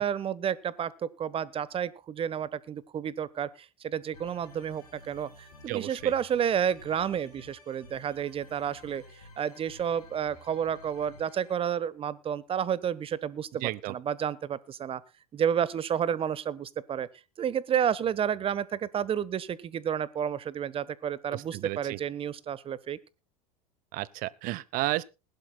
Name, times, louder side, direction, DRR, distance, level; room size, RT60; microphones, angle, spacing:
voice 1, 0.0-15.0 15.3-17.1 17.4-23.0, right 8 dB, 30° right, 1.1 m, -31 dB
sound 1, 4.1-11.5, left 2 dB, 75° left, 4.4 m, -52 dB
voice 2, 5.7-6.1 13.6-13.9 21.3-22.0 23.9-25.0, right 18 dB, 50° right, 0.9 m, -32 dB
20.5 x 12.0 x 2.2 m
hypercardioid pair, 80°, 19 cm